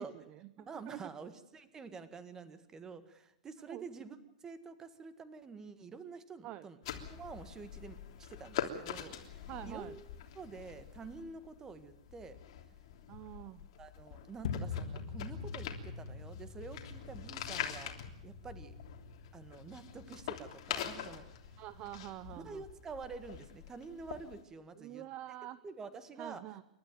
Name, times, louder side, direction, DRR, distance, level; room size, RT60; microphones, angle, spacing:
voice 1, 0.0-1.0 3.7-3.8 6.4-6.7 9.5-10.0 13.1-13.6 21.6-22.6 24.8-25.6 26.2-26.6, right 14 dB, 30° right, 15 dB, 0.8 m, -46 dB
voice 2, 0.6-6.8 7.1-10.0 10.3-12.4 13.8-17.9 18.2-18.7 19.3-21.2 22.4-25.1 25.6-26.4, right 4 dB, 15° right, 12 dB, 1.7 m, -48 dB
sound 1, 6.8-24.4, left 9 dB, 55° left, 3.2 m, -45 dB
sound 2, 14.4-22.7, left 5 dB, 80° left, 2.4 m, -45 dB
29.0 x 12.5 x 9.2 m, 0.83 s
supercardioid pair, 150°, 4 cm